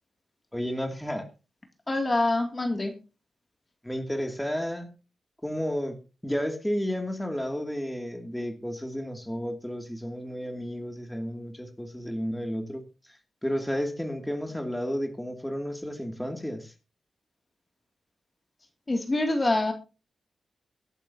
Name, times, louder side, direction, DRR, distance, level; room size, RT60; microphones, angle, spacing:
voice 1, 0.5-1.2 3.8-4.9 5.4-6.0 6.2-12.8 13.4-16.7, equal, 5° left, 4 dB, 2.5 m, -32 dB
voice 2, 1.9-2.9 18.9-19.7, left 2 dB, 30° left, 5 dB, 2.6 m, -25 dB
23.0 x 8.2 x 2.8 m, 0.32 s
cardioid pair, 80°, 0 cm